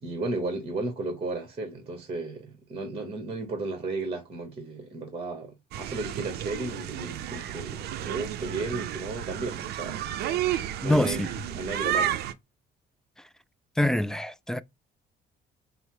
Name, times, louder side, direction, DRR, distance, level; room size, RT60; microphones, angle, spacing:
voice 1, 0.0-5.5 5.8-10.1 10.8-11.2 11.5-12.2, right 2 dB, 35° right, 1.3 m, -34 dB
sound 1, 5.7-12.3, right 11 dB, 70° right, 0.5 m, -32 dB
voice 2, 10.8-11.3 13.8-14.6, left 1 dB, 5° left, 0.3 m, -25 dB
5.3 x 2.1 x 4.6 m
cardioid pair, 110°, 17 cm